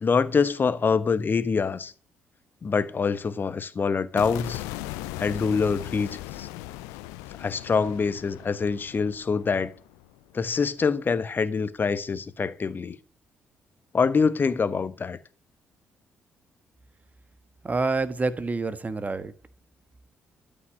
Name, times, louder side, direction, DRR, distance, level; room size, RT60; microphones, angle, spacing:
voice 1, 0.0-1.9 2.6-4.6 5.2-6.5 7.4-9.7 10.3-13.0 13.9-15.2, left 5 dB, 35° left, 1.1 m, -25 dB
sound 1, 4.2-10.4, left 16 dB, 65° left, 0.6 m, -38 dB
voice 2, 17.6-19.3, right 3 dB, 25° right, 1.3 m, -27 dB
13.0 x 5.6 x 9.0 m
figure-of-eight pair, 40°, 6 cm